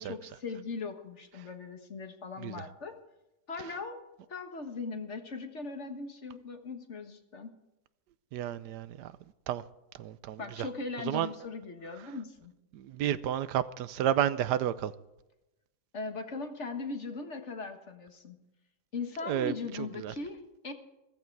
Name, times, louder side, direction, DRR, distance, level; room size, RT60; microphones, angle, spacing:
voice 1, 0.0-3.0 3.5-4.0 4.3-7.5 10.4-12.5 15.9-18.4 18.9-20.7, left 4 dB, 45° left, 1.7 m, -39 dB
voice 2, 8.3-9.1 9.5-9.6 10.0-10.4 11.1-11.3 12.7-14.9 19.3-19.5 20.0-20.1, right 11 dB, 85° right, 1.3 m, -31 dB
15.0 x 14.5 x 4.7 m
omnidirectional pair, 1.8 m